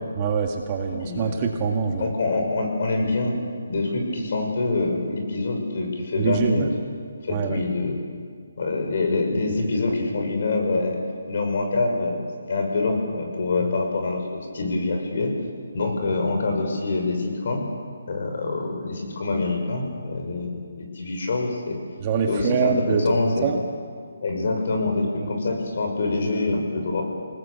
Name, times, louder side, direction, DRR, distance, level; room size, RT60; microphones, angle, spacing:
voice 1, 0.2-2.1 6.2-6.7 7.3-7.6 22.0-23.0 23.4-23.6, right 6 dB, 25° right, 3 dB, 1.9 m, -24 dB
voice 2, 1.0-1.3 1.9-3.4 3.7-6.7 7.2-8.0 8.6-11.0 11.3-15.3 15.7-17.6 18.1-21.8 22.3-23.5 24.2-27.0, left 3 dB, 50° left, 3 dB, 6.2 m, -25 dB
27.5 x 19.5 x 8.4 m, 2.1 s
hypercardioid pair, 165°, 0 cm